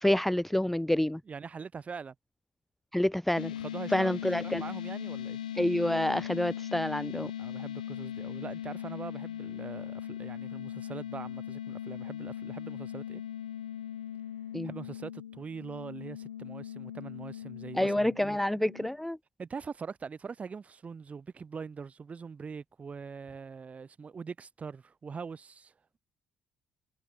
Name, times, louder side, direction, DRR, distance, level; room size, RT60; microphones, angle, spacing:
voice 1, 0.0-1.2 2.9-3.5 3.9-4.6 5.6-7.3 14.5-14.7 17.7-19.2, left 1 dB, 5° left, 0.3 m, -28 dB
voice 2, 1.3-2.2 3.6-4.2 4.4-5.4 7.4-13.2 14.6-18.4 19.4-25.7, right 5 dB, 30° right, 1.8 m, -43 dB
sound 1, 3.4-18.9, left 10 dB, 80° left, 0.8 m, -39 dB
figure-of-eight pair, 50°, 4 cm